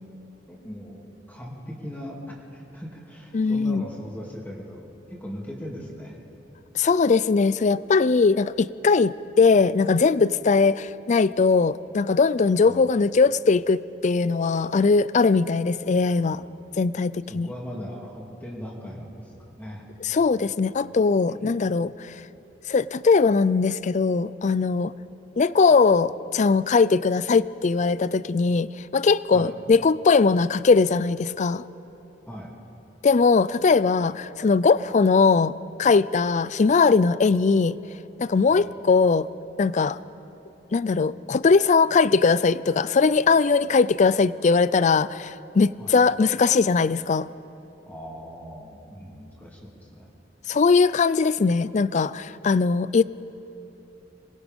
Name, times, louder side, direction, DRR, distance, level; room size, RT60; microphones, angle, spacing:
voice 1, 0.5-1.0 1.3-6.2 12.6-12.8 16.3-16.5 17.3-19.9 21.3-21.5 29.3-29.5 32.3-32.5 38.5-38.6 45.8-45.9 47.9-50.1, equal, 10° left, -3 dB, 2.7 m, -39 dB
voice 2, 3.3-3.8 6.7-16.4 16.8-17.5 20.0-22.1 22.7-24.9 25.4-31.6 33.0-37.8 38.2-39.3 39.6-40.0 40.7-47.3 50.5-53.0, left 4 dB, 40° left, 18 dB, 0.4 m, -20 dB
26.0 x 20.5 x 5.3 m, 2.9 s
head